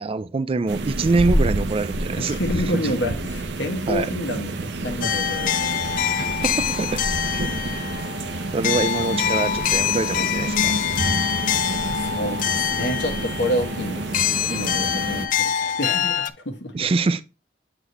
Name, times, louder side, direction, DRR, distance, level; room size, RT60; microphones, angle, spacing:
voice 1, 0.0-2.4 2.7-3.1 3.9-4.1 6.1-7.0 7.3-7.4 7.7-7.9 8.5-10.7 16.7-17.2, right 3 dB, 30° right, 0.4 m, -25 dB
sound 1, 0.7-15.3, right 2 dB, 70° right, 0.7 m, -28 dB
voice 2, 2.2-6.2 11.9-14.0 14.5-16.9, left 1 dB, 70° left, 1.2 m, -29 dB
sound 2, 5.0-16.3, left 10 dB, 45° left, 0.3 m, -25 dB
8.0 x 4.0 x 3.0 m
head